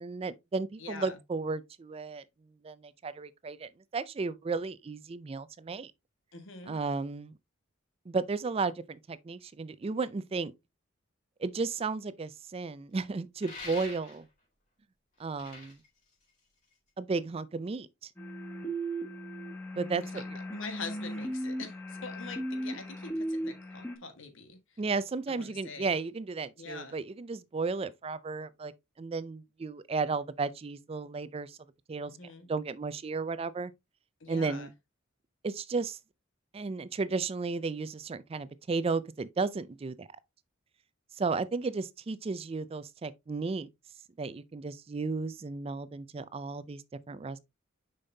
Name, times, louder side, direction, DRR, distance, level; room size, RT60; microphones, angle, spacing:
voice 1, 0.0-2.2 2.6-5.9 6.7-7.3 8.1-10.5 11.4-14.3 15.2-15.8 17.0-18.1 19.8-20.4 24.8-28.7 29.0-31.6 31.9-32.1 32.5-33.7 34.3-34.7 35.4-36.0 36.5-40.1 41.2-43.7 44.2-47.4, right 4 dB, 30° right, 0.4 m, -34 dB
voice 2, 0.8-1.2 6.3-6.8 20.1-20.2 20.5-24.6 25.3-25.9 26.6-27.0 32.1-32.5 34.2-34.7, left 4 dB, 75° left, 1.5 m, -44 dB
sound 1, 13.4-14.4 15.2-16.9, left 3 dB, 40° left, 3.8 m, -46 dB
sound 2, 18.2-24.0, right 1 dB, 10° left, 1.4 m, -37 dB
6.7 x 5.4 x 2.7 m
head